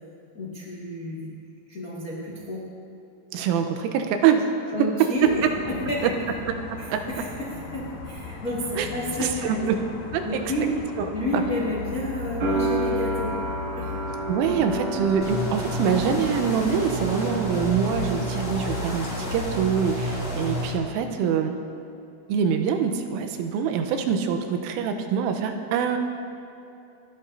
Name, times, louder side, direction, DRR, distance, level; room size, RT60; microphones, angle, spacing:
voice 1, 0.3-1.3 1.7-2.7 4.7-5.4 5.9-6.0 6.8-9.6 10.2-10.7 11.1-13.4 13.7-13.9, left 1 dB, 80° left, -5 dB, 0.8 m, -30 dB
voice 2, 3.3-4.5 6.0-6.1 6.5-7.0 8.8-8.9 9.2-9.8 10.1-10.4 11.0-11.1 11.3-11.4 14.3-21.5 22.3-26.0, right 7 dB, 90° right, 6 dB, 3.4 m, -25 dB
sound 1, 5.2-20.7, left 3 dB, 60° left, 2.1 m, -37 dB
sound 2, 12.4-19.2 19.5-20.4, right 1 dB, 60° right, 2.4 m, -32 dB
sound 3, 15.2-20.7, equal, 15° left, 3.3 m, -30 dB
28.5 x 11.5 x 2.7 m, 2.7 s
omnidirectional pair, 5.7 m